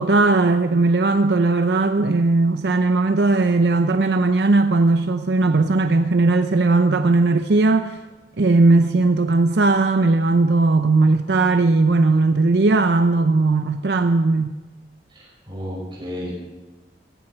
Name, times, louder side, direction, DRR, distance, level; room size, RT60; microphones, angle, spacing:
voice 1, 0.0-8.0 8.4-14.5, right 3 dB, 75° right, 0.6 m, -18 dB
voice 2, 15.1-16.4, equal, 25° right, 6.2 m, -32 dB
16.5 x 15.5 x 4.5 m
head